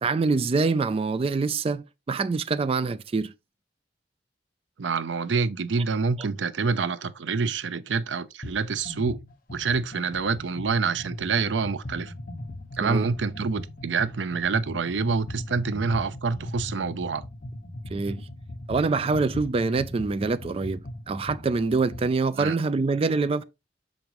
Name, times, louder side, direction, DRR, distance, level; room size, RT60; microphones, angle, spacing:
voice 1, 0.0-3.3 12.8-13.1 17.9-18.2 18.7-20.8 21.1-23.4, right 4 dB, 35° right, 0.3 m, -25 dB
voice 2, 4.8-9.2 9.5-12.1 12.8-17.2 22.3-22.6, right 4 dB, 85° right, 0.5 m, -27 dB
sound 1, 8.4-8.6 8.8-22.1, left 1 dB, 50° left, 1.2 m, -39 dB
7.0 x 5.1 x 3.0 m
head